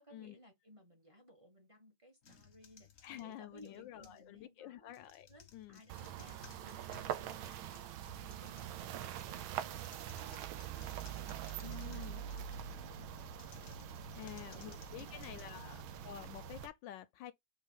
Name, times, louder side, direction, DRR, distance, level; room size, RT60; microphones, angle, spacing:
voice 1, 0.0-4.9 5.3-13.3 13.8-15.9, equal, 20° right, 1.4 m, -61 dB
sound 1, 2.2-4.3 4.9-12.8 13.3-16.2, left 8 dB, 45° left, 0.9 m, -61 dB
voice 2, 3.0-5.3 5.5-5.8 11.6-12.2 14.1-17.3, left 12 dB, 75° left, 1.2 m, -49 dB
sound 2, 5.9-16.7, right 10 dB, 85° right, 1.5 m, -44 dB
4.4 x 3.8 x 5.5 m
omnidirectional pair, 2.2 m